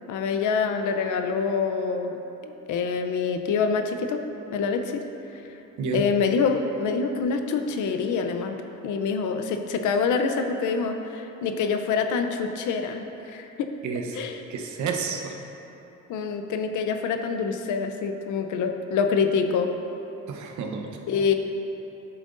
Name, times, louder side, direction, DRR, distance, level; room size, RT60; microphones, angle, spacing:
voice 1, 0.1-2.2 2.4-4.2 4.5-5.0 5.4-5.5 5.9-8.6 8.8-13.7 14.1-14.4 16.1-19.7 21.1-21.3, left 5 dB, 80° left, 6 dB, 0.6 m, -26 dB
voice 2, 14.5-15.4 20.3-20.9, right 5 dB, 70° right, 3 dB, 0.9 m, -30 dB
10.0 x 7.6 x 2.6 m, 3.0 s
cardioid pair, 90°, 30 cm